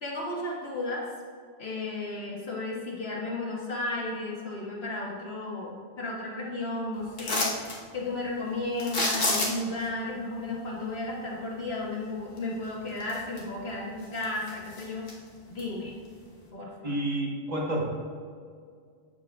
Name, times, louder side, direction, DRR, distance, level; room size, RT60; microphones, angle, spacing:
voice 1, 0.0-1.1 1.6-7.5 7.9-15.1 15.5-16.0 16.5-17.0, left 2 dB, 60° left, -4 dB, 1.7 m, -34 dB
sound 1, 7.2-7.8 8.8-9.8 12.4-12.5 13.0-13.7 14.0-15.1 15.6-15.7, left 2 dB, 45° left, 1.3 m, -29 dB
voice 2, 16.8-17.8, right 1 dB, 40° right, -2 dB, 1.4 m, -29 dB
9.7 x 7.0 x 2.4 m, 2.1 s
omnidirectional pair, 1.2 m